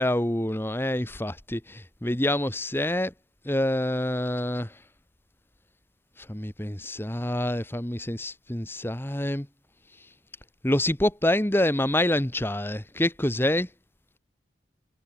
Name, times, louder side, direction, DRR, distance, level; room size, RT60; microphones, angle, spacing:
voice 1, 0.0-3.1 3.4-4.7 6.3-9.5 10.6-13.7, left 1 dB, 15° left, 1.2 m, -26 dB
head